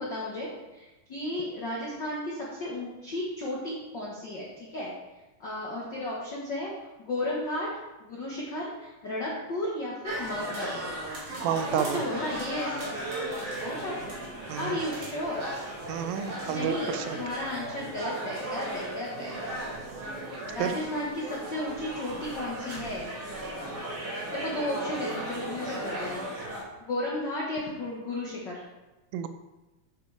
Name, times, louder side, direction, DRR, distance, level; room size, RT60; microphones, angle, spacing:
voice 1, 0.0-4.9 5.4-6.7 7.0-7.7 8.0-10.9 11.7-12.7 13.5-14.1 14.5-15.7 16.5-19.4 20.5-23.4 24.3-26.3 26.8-28.6, left 1 dB, 85° left, -5 dB, 0.9 m, -34 dB
sound 1, 10.0-26.6, right 1 dB, 45° right, 2.7 m, -36 dB
voice 2, 11.4-12.0 14.5-14.8 15.9-17.2 20.6-20.8 29.1-29.3, right 9 dB, 80° right, 9 dB, 2.3 m, -30 dB
9.3 x 7.2 x 3.4 m, 1.1 s
omnidirectional pair, 4.3 m